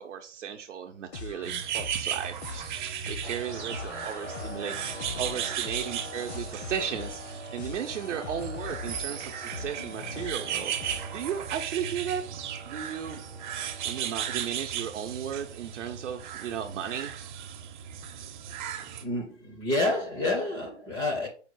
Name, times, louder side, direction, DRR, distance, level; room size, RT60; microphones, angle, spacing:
voice 1, 0.0-13.2 13.8-17.2, right 8 dB, 90° right, 0.6 m, -35 dB
sound 1, 1.1-11.5, left 5 dB, 65° left, 0.7 m, -42 dB
sound 2, 1.4-19.0, right 9 dB, 45° right, 0.6 m, -36 dB
sound 3, 3.2-17.3, left 1 dB, 85° left, 1.7 m, -46 dB
voice 2, 19.0-21.3, left 2 dB, 15° left, 0.4 m, -29 dB
4.9 x 2.2 x 4.5 m
hypercardioid pair, 145°, 36 cm